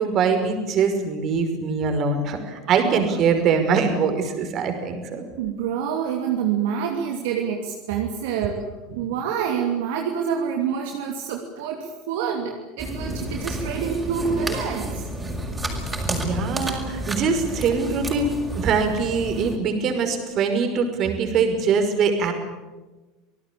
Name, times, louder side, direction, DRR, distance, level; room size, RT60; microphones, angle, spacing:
voice 1, 0.0-5.3 16.1-22.3, right 5 dB, 45° right, 6 dB, 5.6 m, -23 dB
voice 2, 5.4-15.0, right 7 dB, 65° right, 2 dB, 2.9 m, -27 dB
sound 1, 12.8-19.6, right 1 dB, 15° right, 6.6 m, -31 dB
27.5 x 19.0 x 8.7 m, 1.2 s
hypercardioid pair, 80°, 0 cm